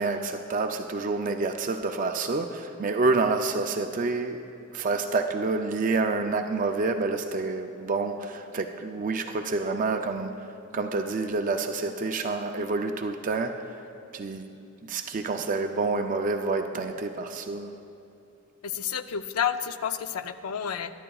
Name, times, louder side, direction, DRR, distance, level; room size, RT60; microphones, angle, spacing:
voice 1, 0.0-4.4 4.7-10.3 10.7-13.7 14.1-14.5 14.9-17.7, right 3 dB, 35° right, 5 dB, 0.4 m, -28 dB
voice 2, 18.6-20.9, left 8 dB, 80° left, 11 dB, 0.5 m, -30 dB
22.5 x 11.0 x 2.3 m, 2.7 s
head